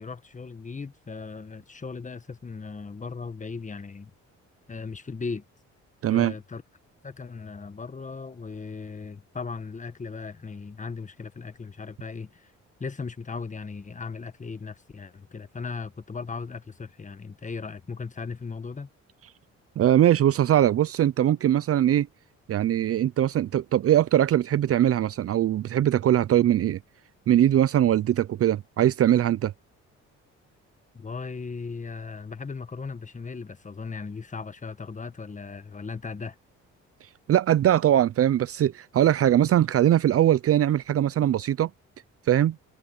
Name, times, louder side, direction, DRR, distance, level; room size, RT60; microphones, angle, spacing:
voice 1, 0.0-4.1 4.7-5.4 6.1-6.6 7.0-12.5 12.8-18.9 30.9-36.3, left 4 dB, 25° left, 1.3 m, -37 dB
voice 2, 6.0-6.3 19.8-22.1 22.5-26.8 27.3-29.5 37.3-41.7 42.3-42.6, right 11 dB, 50° right, 0.5 m, -21 dB
cardioid pair, 90°, 30 cm